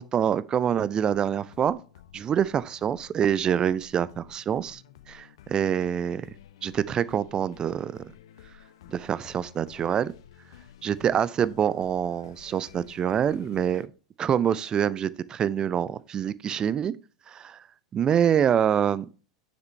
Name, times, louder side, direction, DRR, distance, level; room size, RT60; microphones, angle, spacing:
voice 1, 0.0-1.8 2.1-4.8 5.1-6.3 6.6-8.0 8.9-10.1 10.8-13.9 14.2-16.9 17.3-17.6 17.9-19.1, right 9 dB, 25° right, 0.4 m, -26 dB
sound 1, 1.1-13.9, left 11 dB, 60° left, 0.8 m, -52 dB
6.8 x 6.6 x 3.2 m
figure-of-eight pair, 85°, 3 cm